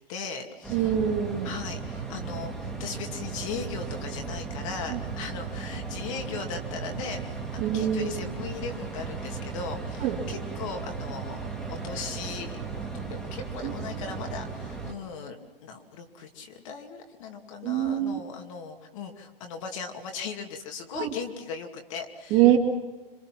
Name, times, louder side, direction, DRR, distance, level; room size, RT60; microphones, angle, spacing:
voice 1, 0.1-0.9 1.4-7.2 7.5-22.4, left 5 dB, 35° left, 4 dB, 2.6 m, -38 dB
sound 1, 0.6-14.9, right 4 dB, ahead, 2.4 m, -36 dB
voice 2, 0.7-1.5 4.9-5.0 7.6-8.2 10.0-10.2 13.6-13.7 17.6-18.2 20.9-21.1 22.3-22.6, right 11 dB, 25° right, 1 dB, 2.5 m, -24 dB
26.5 x 24.0 x 6.0 m, 1.2 s
hypercardioid pair, 160°, 29 cm